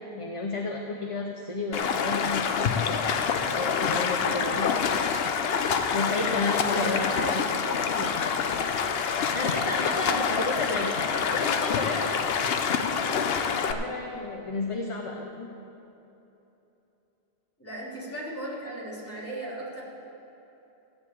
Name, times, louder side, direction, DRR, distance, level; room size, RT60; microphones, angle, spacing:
voice 1, 0.1-2.9 3.4-4.7 5.9-7.1 7.8-8.1 9.3-12.1 13.5-15.5, left 3 dB, 35° left, 1 dB, 0.8 m, -32 dB
Stream, 1.7-13.7, left 6 dB, 75° left, 0.9 m, -26 dB
voice 2, 6.6-7.7 9.8-10.9 17.6-19.8, right 1 dB, 15° left, -7 dB, 3.1 m, -37 dB
15.5 x 5.3 x 8.4 m, 3.0 s
omnidirectional pair, 1.0 m